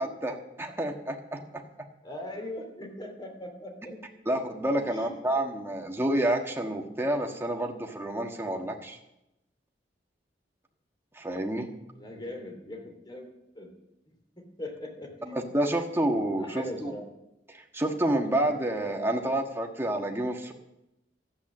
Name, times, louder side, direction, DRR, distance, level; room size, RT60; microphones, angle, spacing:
voice 1, 0.0-1.6 4.2-9.0 11.1-11.7 15.3-16.9 17.5-20.5, right 1 dB, 15° right, 2 dB, 1.6 m, -29 dB
voice 2, 2.0-4.0 4.9-5.1 5.4-5.6 12.0-13.7 14.4-15.5 16.4-17.0, left 1 dB, 25° left, 2 dB, 3.0 m, -40 dB
13.5 x 8.5 x 7.4 m, 0.88 s
head